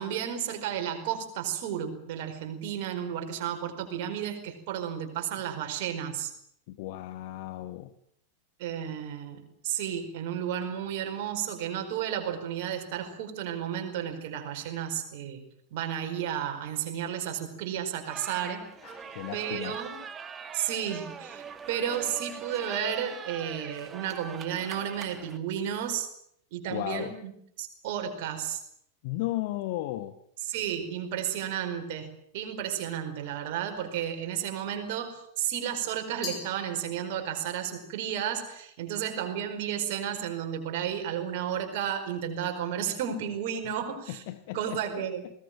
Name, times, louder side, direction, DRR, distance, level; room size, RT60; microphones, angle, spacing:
voice 1, 0.0-6.3 8.6-15.4 15.7-18.6 19.3-20.0 20.5-26.1 26.5-27.3 27.6-28.6 30.5-44.2 44.5-45.2, right 9 dB, 50° right, 5 dB, 4.8 m, -32 dB
voice 2, 6.7-7.9 18.8-19.8 26.7-27.1 29.0-30.1 43.6-43.8 44.1-45.0, left 16 dB, 50° left, 11 dB, 1.3 m, -35 dB
sound 1, 18.1-25.4, right 6 dB, 20° right, 1.8 m, -42 dB
Glass, 36.2-37.5, left 5 dB, 30° left, 7.7 m, -41 dB
21.0 x 18.5 x 9.1 m, 0.70 s
figure-of-eight pair, 90°, 0 cm